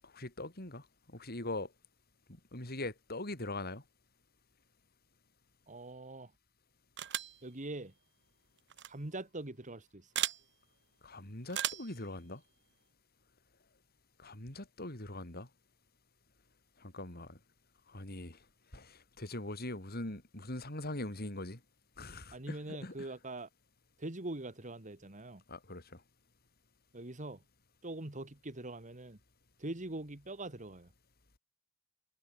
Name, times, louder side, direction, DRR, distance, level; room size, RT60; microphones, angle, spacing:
voice 1, 0.0-1.7 2.3-3.8 11.0-12.4 14.2-15.5 16.8-17.4 17.9-18.4 18.7-21.6 22.0-23.1 25.5-26.0, left 2 dB, 50° left, 6.0 m, -42 dB
voice 2, 5.7-6.3 7.4-7.9 8.9-10.1 22.3-23.5 24.0-25.4 26.9-27.4 27.8-29.2 29.6-30.9, right 2 dB, 35° right, 2.2 m, -43 dB
sound 1, 7.0-7.4 8.7-8.9 10.1-10.4 11.5-11.9, right 11 dB, 60° right, 3.1 m, -35 dB
head